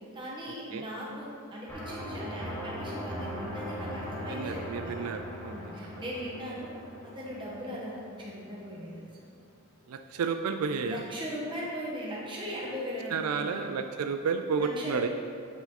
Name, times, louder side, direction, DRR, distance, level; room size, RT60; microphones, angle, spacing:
voice 1, 0.1-5.0 5.5-6.7 7.0-9.1 10.8-13.7 14.6-15.1, equal, 20° right, -6 dB, 1.8 m, -38 dB
sound 1, 1.7-8.4, equal, 10° left, 1.9 m, -40 dB
voice 2, 4.3-5.5 9.9-11.0 13.1-15.1, right 5 dB, 80° right, 7 dB, 0.4 m, -31 dB
9.6 x 4.8 x 4.2 m, 2.4 s
head